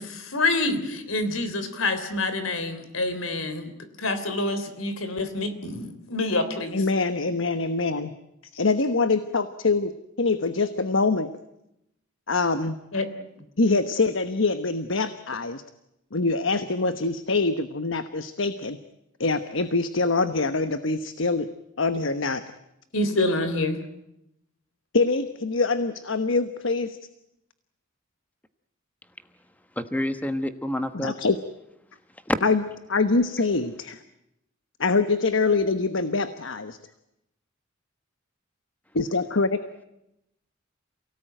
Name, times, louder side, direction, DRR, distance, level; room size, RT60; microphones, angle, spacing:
voice 1, 0.0-3.7 4.0-6.8 12.9-13.1 22.9-23.8, left 2 dB, 85° left, 10 dB, 3.3 m, -27 dB
voice 2, 6.7-8.1 8.6-9.9 10.2-11.3 12.3-12.7 13.6-15.6 16.1-18.8 19.2-21.5 21.8-22.4 24.9-27.0 30.9-31.4 32.4-32.6 32.9-34.0 34.8-36.8 38.9-39.6, left 3 dB, 70° left, 11 dB, 1.2 m, -24 dB
voice 3, 29.7-31.1 32.2-32.4, left 1 dB, 10° left, 9 dB, 1.2 m, -27 dB
29.0 x 18.0 x 9.1 m, 0.85 s
head